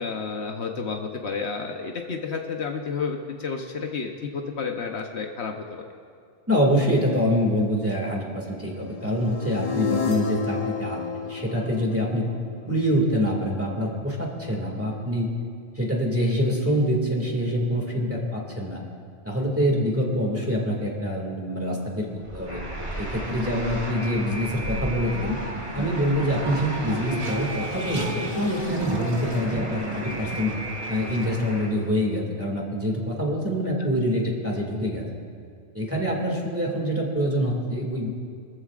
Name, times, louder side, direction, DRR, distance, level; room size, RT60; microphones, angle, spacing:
voice 1, 0.0-5.8, left 5 dB, 65° left, 3 dB, 1.1 m, -31 dB
voice 2, 6.5-12.3 12.7-15.3 15.8-18.8 19.2-22.1 22.3-22.6 23.0-25.4 25.7-30.5 30.9-35.0 35.7-38.1, equal, 10° right, -2 dB, 2.0 m, -25 dB
sound 1, 8.9-13.0, left 6 dB, 45° left, 1.0 m, -31 dB
Race car auto racing, 22.2-31.8, right 1 dB, 25° right, 1.2 m, -34 dB
Alarm, 22.5-31.7, right 1 dB, 70° right, 4.0 m, -37 dB
23.5 x 14.0 x 2.5 m, 2.3 s
omnidirectional pair, 1.2 m